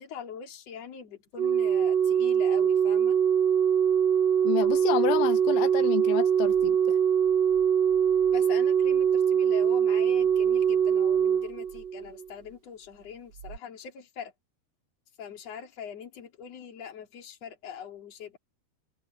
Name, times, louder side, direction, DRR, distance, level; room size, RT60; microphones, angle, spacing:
voice 1, 0.0-3.2 8.3-14.3 15.2-18.4, left 7 dB, 40° left, 3.5 m, -42 dB
Organ, 1.4-12.3 13.4-13.6, right 8 dB, 70° right, 1.5 m, -23 dB
voice 2, 4.4-6.8, left 15 dB, 85° left, 3.3 m, -29 dB
omnidirectional pair, 5.2 m